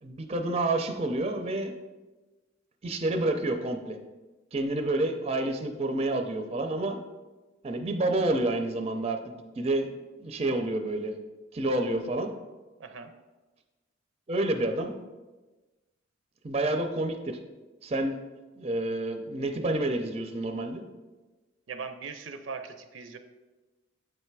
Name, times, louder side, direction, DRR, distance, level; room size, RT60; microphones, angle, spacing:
voice 1, 0.0-1.7 2.8-4.0 4.5-7.0 7.6-9.9 10.2-11.2 11.5-12.3 14.3-15.0 16.4-17.4 17.8-18.2 18.6-20.8, right 2 dB, 30° right, 6 dB, 0.5 m, -29 dB
voice 2, 12.8-13.1 21.7-23.2, right 5 dB, 80° right, 8 dB, 0.5 m, -39 dB
7.7 x 3.3 x 4.6 m, 1.2 s
head